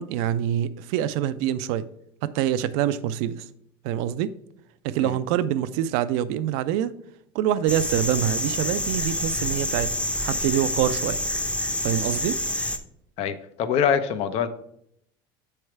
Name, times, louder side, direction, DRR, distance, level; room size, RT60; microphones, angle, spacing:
voice 1, 0.0-1.8 2.2-3.5 3.8-4.3 4.8-6.9 7.3-11.2 11.8-12.3, right 11 dB, 70° right, 14 dB, 0.4 m, -25 dB
sound 1, 7.7-12.8, left 1 dB, 10° left, 0.7 m, -27 dB
voice 2, 13.2-14.5, left 7 dB, 55° left, 11 dB, 0.7 m, -24 dB
7.7 x 3.3 x 4.5 m, 0.72 s
supercardioid pair, 95°, 12 cm